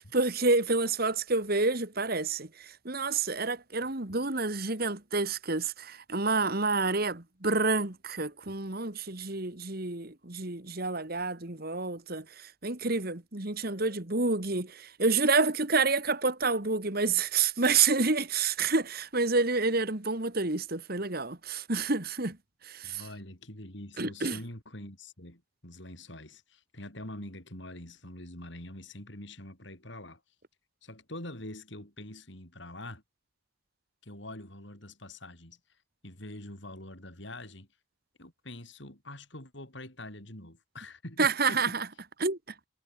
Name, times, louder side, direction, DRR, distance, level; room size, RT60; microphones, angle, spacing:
voice 1, 0.0-22.4 22.6-23.0 24.0-24.4 41.2-41.9 42.2-42.4, right 3 dB, 45° right, 2.0 m, -28 dB
voice 2, 22.8-30.2 30.8-33.0 34.0-35.6 36.0-37.7 38.2-41.8, left 1 dB, 60° left, 6.2 m, -44 dB
head